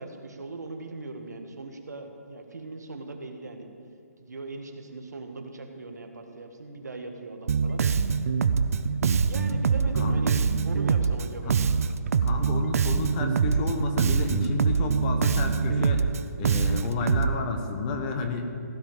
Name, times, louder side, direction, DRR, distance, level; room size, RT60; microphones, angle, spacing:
voice 1, 0.0-3.7 4.2-7.8 9.3-11.6, right 3 dB, 85° right, 4 dB, 1.7 m, -39 dB
Bass guitar, 7.5-17.4, right 6 dB, 60° right, 0.6 m, -24 dB
voice 2, 12.2-16.0 16.4-18.5, left 4 dB, 25° left, 5 dB, 1.2 m, -31 dB
16.0 x 5.7 x 9.1 m, 2.6 s
hypercardioid pair, 150°, 9 cm